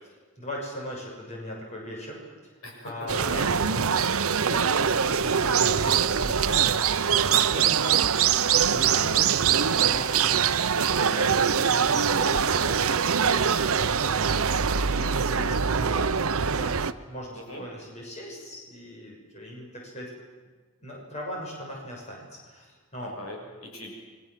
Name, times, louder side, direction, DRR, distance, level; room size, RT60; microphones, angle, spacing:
voice 1, 0.4-2.2 2.8-3.9 4.4-6.8 7.0-7.9 8.7-10.6 10.9-20.1 20.8-23.2, equal, 30° left, -1 dB, 7.0 m, -39 dB
voice 2, 2.6-3.5 6.8-7.0 7.7-7.9 8.7-8.9 17.3-17.6 23.0-23.9, left 1 dB, 70° left, 1 dB, 6.7 m, -40 dB
sound 1, 3.1-16.9, right 7 dB, 75° right, 0.8 m, -23 dB
29.5 x 23.5 x 7.6 m, 1.4 s
head